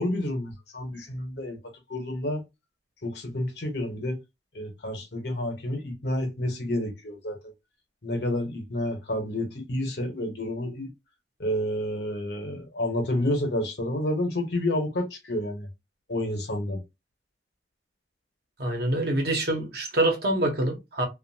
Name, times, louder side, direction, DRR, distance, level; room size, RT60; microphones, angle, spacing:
voice 1, 0.0-1.6 1.9-2.4 3.0-4.2 4.5-7.4 8.0-10.9 11.4-15.7 16.1-16.8, left 1 dB, 65° left, 1.0 m, -29 dB
voice 2, 18.6-21.1, right 1 dB, 60° right, 1.0 m, -25 dB
2.7 x 2.5 x 2.7 m
head